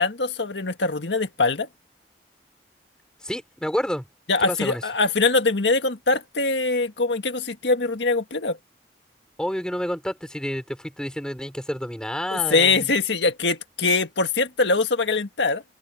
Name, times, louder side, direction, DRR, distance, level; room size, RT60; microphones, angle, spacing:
voice 1, 0.0-1.7 4.3-8.6 12.3-15.6, left 3 dB, 85° left, 1.7 m, -23 dB
voice 2, 3.2-4.0 4.4-4.8 9.4-12.9, equal, 5° left, 5.8 m, -29 dB
open air
head